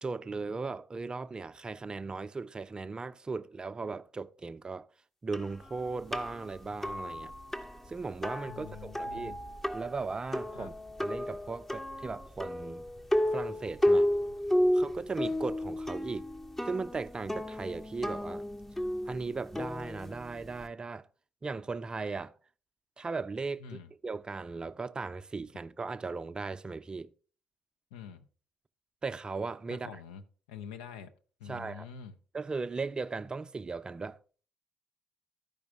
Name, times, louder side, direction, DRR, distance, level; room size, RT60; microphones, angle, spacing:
voice 1, 0.0-4.9 5.2-7.3 7.9-9.3 9.7-10.7 11.0-12.8 13.3-14.1 14.7-16.3 16.6-18.4 19.0-21.1 21.4-22.3 23.0-23.6 24.0-27.1 29.0-30.0 31.5-31.9 32.3-34.2, right 4 dB, 25° right, 0.5 m, -37 dB
sound 1, 5.3-20.7, left 1 dB, 10° left, 0.7 m, -33 dB
voice 2, 8.5-9.4 10.5-10.7 23.6-23.9 27.9-28.3 29.7-30.2 30.5-31.1 31.4-32.1, left 7 dB, 75° left, 0.7 m, -46 dB
13.0 x 5.2 x 3.5 m
figure-of-eight pair, 45°, 3 cm